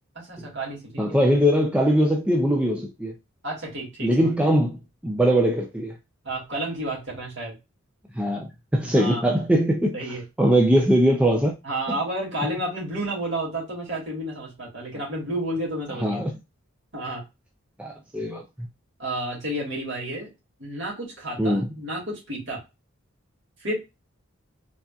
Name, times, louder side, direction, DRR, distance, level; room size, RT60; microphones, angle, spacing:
voice 1, 0.2-1.2 3.4-4.1 6.2-7.5 8.9-9.3 9.9-10.2 11.6-16.2 16.9-17.2 19.0-20.3 20.6-22.6 23.6-23.7, right 1 dB, 65° right, 2.3 m, -31 dB
voice 2, 1.0-3.1 4.0-5.9 8.1-10.0 10.4-11.5 11.9-12.0 16.0-16.3 17.8-18.7 21.4-21.7, equal, 5° right, 0.4 m, -21 dB
4.1 x 3.5 x 2.3 m
head